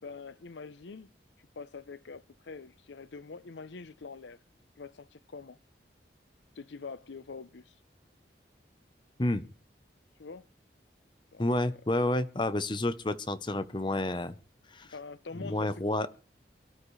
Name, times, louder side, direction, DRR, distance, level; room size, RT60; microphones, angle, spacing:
voice 1, 0.0-1.1 1.6-4.4 4.8-5.6 6.6-7.7 10.2-10.5 11.3-11.5 14.9-15.7 16.0-16.1, left 4 dB, 90° left, 0.7 m, -44 dB
voice 2, 11.4-14.4 14.7-14.9 15.3-16.1, left 1 dB, 25° left, 0.8 m, -30 dB
23.0 x 12.5 x 3.2 m
head